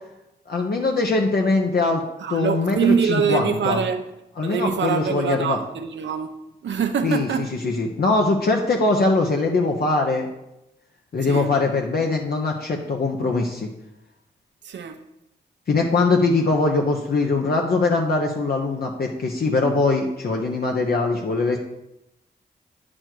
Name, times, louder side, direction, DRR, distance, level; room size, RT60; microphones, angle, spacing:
voice 1, 0.5-2.0 2.3-3.8 4.4-5.6 7.0-10.3 11.1-13.7 15.7-21.6, left 3 dB, 55° left, 0.9 m, -22 dB
voice 2, 2.2-4.1 4.4-6.4 6.6-7.5 11.2-11.5 14.6-15.0, right 6 dB, 75° right, 0.8 m, -24 dB
9.1 x 4.3 x 4.6 m
cardioid pair, 65°, 19 cm